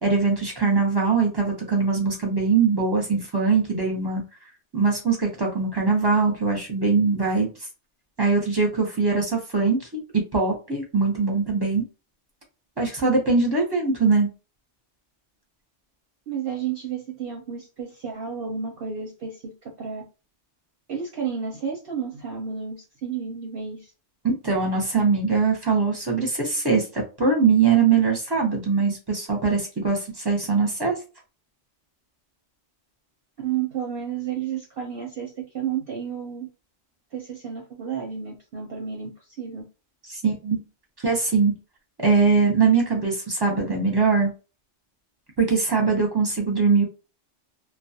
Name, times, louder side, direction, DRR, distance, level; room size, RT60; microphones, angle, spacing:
voice 1, 0.0-4.2 4.7-7.5 8.2-11.8 12.8-14.3 24.2-30.9 40.1-40.6 41.0-41.5 42.0-44.3 45.4-46.8, right 4 dB, 25° right, 0 dB, 0.7 m, -22 dB
voice 2, 16.3-20.0 20.9-23.9 33.4-36.5 37.1-39.6, right 7 dB, 60° right, 1 dB, 0.7 m, -31 dB
2.3 x 2.1 x 2.7 m, 0.32 s
omnidirectional pair, 1.3 m